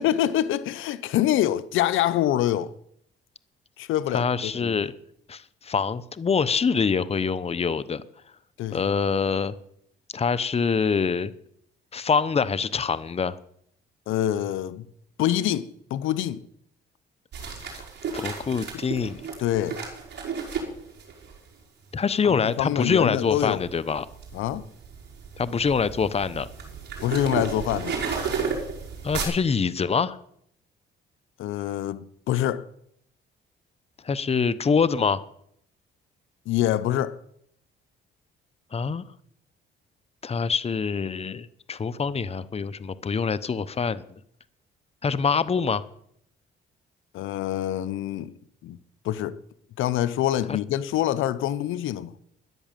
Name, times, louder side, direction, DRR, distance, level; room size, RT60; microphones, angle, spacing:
voice 1, 0.0-2.7 3.8-4.8 8.6-8.8 14.1-14.9 15.2-16.4 19.4-19.8 22.2-23.6 24.3-24.7 27.0-28.0 31.4-32.7 36.5-37.2 47.1-48.3 48.6-48.8 49.0-49.4 49.8-52.2, left 12 dB, 85° left, 0.7 m, -25 dB
voice 2, 4.1-4.9 5.3-8.0 8.7-9.5 10.1-11.3 11.9-13.4 17.6-17.7 18.1-19.3 21.9-24.1 25.4-26.5 29.0-30.2 34.0-35.2 38.7-39.0 40.2-44.0 45.0-45.8 50.5-50.6, left 5 dB, 30° left, 0.8 m, -25 dB
sound 1, 17.3-21.4 22.1-22.3 22.8-29.2, right 5 dB, 60° right, 5.3 m, -33 dB
13.5 x 10.5 x 7.4 m
cardioid pair, 90°, 20 cm